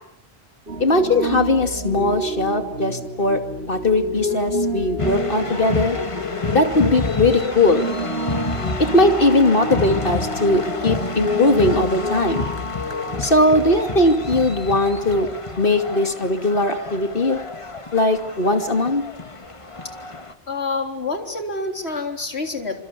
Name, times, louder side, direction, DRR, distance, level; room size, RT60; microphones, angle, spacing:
Piano, 0.7-14.4, equal, 70° right, 3.1 m, -29 dB
voice 1, 0.8-3.4 3.7-6.0 6.5-7.9 8.8-12.5 13.2-15.3 15.6-17.4 17.9-19.0, left 2 dB, 60° left, 7 dB, 2.7 m, -19 dB
sound 1, 5.0-20.3, left 3 dB, 30° left, 1.5 m, -29 dB
voice 2, 20.5-22.8, left 3 dB, 90° left, 4 dB, 4.0 m, -27 dB
28.0 x 25.5 x 8.4 m, 0.81 s
omnidirectional pair, 1.1 m